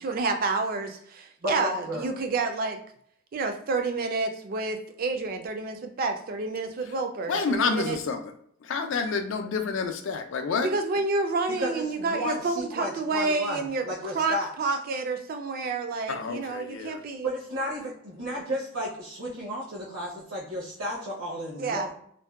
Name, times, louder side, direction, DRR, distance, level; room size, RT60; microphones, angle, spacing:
voice 1, 0.0-2.8 3.3-8.0 10.6-17.3 21.6-21.9, right 3 dB, 45° right, 6 dB, 0.3 m, -29 dB
voice 2, 1.4-2.1 11.6-14.7 17.2-21.9, equal, 80° right, -8 dB, 0.8 m, -33 dB
voice 3, 7.3-8.2 8.7-10.7 16.1-17.0, left 4 dB, 60° left, 6 dB, 0.3 m, -28 dB
2.6 x 2.1 x 2.3 m, 0.66 s
head